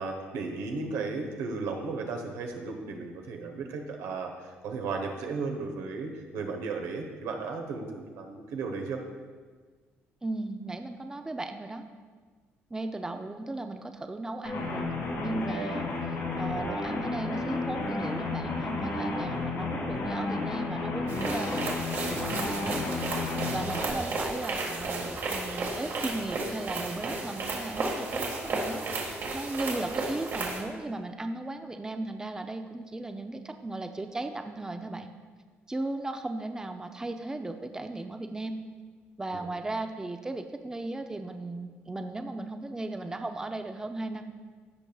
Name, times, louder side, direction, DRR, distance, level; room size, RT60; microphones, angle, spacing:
voice 1, 0.0-4.3 4.6-9.0 39.3-39.5, right 4 dB, 90° right, 3 dB, 1.0 m, -35 dB
voice 2, 10.2-11.8 12.7-21.7 22.1-35.1 35.7-38.6 39.2-44.3, right 2 dB, 15° right, 6 dB, 0.5 m, -36 dB
sound 1, 14.4-23.9, left 3 dB, 85° left, 1.9 m, -32 dB
sound 2, 21.1-30.6, right 3 dB, 60° right, 1.7 m, -33 dB
15.0 x 5.2 x 2.3 m, 1.5 s
cardioid pair, 95°, 5 cm